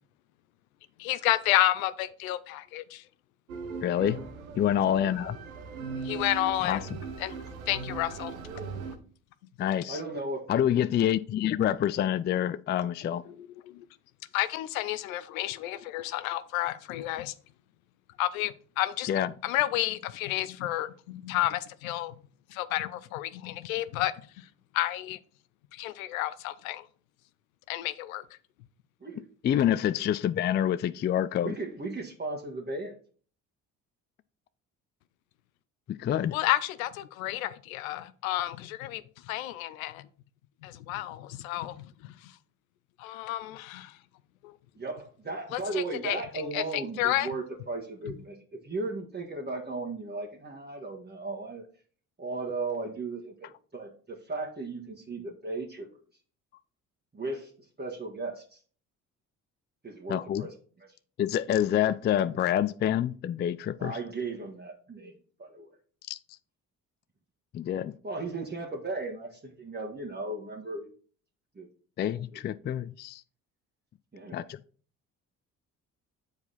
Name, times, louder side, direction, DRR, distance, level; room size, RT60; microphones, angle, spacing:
voice 1, 1.0-3.0 6.0-6.9 7.2-7.3 7.7-8.3 13.6-13.8 14.3-17.3 18.2-19.1 19.4-22.1 22.5-24.4 24.7-25.2 25.7-26.9 27.7-28.2 36.3-40.0 40.6-41.9 42.2-42.3 43.0-44.0 44.4-44.5 45.5-46.2 46.5-47.3, left 15 dB, 85° left, 0.5 m, -31 dB
sound 1, 3.5-9.0, right 5 dB, 90° right, 0.8 m, -39 dB
voice 2, 3.8-4.1 4.6-5.4 6.6-6.8 9.6-10.0 10.5-13.2 19.1-19.3 29.4-31.6 35.9-36.4 60.1-60.5 61.2-63.9 66.1-66.2 67.5-67.9 72.0-73.2 74.3-74.6, left 10 dB, 30° left, 0.3 m, -27 dB
voice 3, 9.9-10.5 29.0-29.2 31.4-32.9 44.8-51.6 52.2-55.9 57.1-57.5 57.8-58.6 59.8-60.5 60.8-60.9 63.8-65.7 68.0-70.9 71.5-71.7 72.3-72.4 74.1-74.5, right 3 dB, 25° right, 1.6 m, -36 dB
7.9 x 4.8 x 4.0 m
hypercardioid pair, 50°, 41 cm